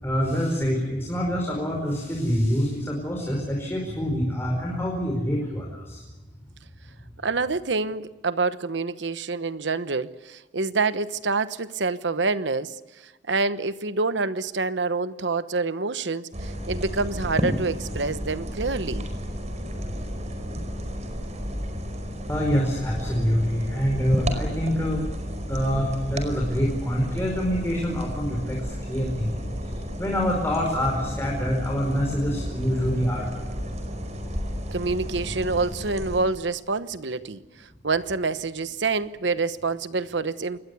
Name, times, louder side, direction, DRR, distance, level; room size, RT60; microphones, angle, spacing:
voice 1, 0.0-6.0 22.3-25.1 25.5-29.5 30.0-33.5, equal, 15° left, 5.0 m, -26 dB
voice 2, 7.2-19.1 34.7-40.6, right 3 dB, 75° right, 1.1 m, -27 dB
sound 1, 16.3-36.2, equal, 40° right, 4.9 m, -32 dB
26.5 x 21.0 x 8.3 m
head